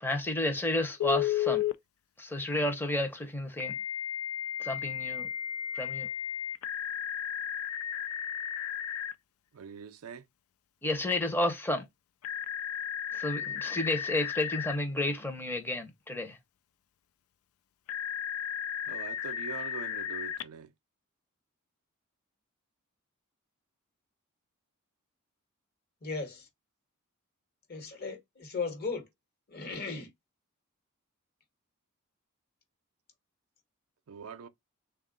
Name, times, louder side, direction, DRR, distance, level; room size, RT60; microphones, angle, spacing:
voice 1, 0.0-1.6 2.2-3.7 4.6-5.3 5.7-6.1 10.8-11.9 13.1-16.4, left 1 dB, 10° left, 0.7 m, -31 dB
Telephone, 1.0-1.7 3.6-9.1 12.2-14.8 17.9-20.4, left 10 dB, 70° left, 0.4 m, -34 dB
voice 2, 9.5-10.2 18.9-20.7 34.1-34.5, right 6 dB, 85° right, 0.5 m, -43 dB
voice 3, 26.0-26.5 27.7-29.0 29.5-30.1, left 4 dB, 45° left, 1.2 m, -36 dB
3.6 x 2.4 x 3.7 m
head